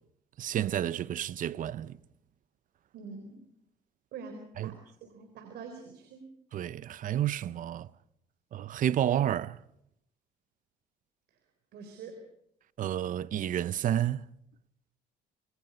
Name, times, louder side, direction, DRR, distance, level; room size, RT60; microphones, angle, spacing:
voice 1, 0.4-2.0 4.6-4.7 6.5-7.9 8.5-9.6 12.8-14.3, right 11 dB, 55° right, 0.7 m, -30 dB
voice 2, 2.9-3.4 4.1-6.3 11.7-12.2, right 4 dB, 75° right, 4.1 m, -45 dB
27.0 x 21.5 x 5.5 m
cardioid pair, 110°, 17 cm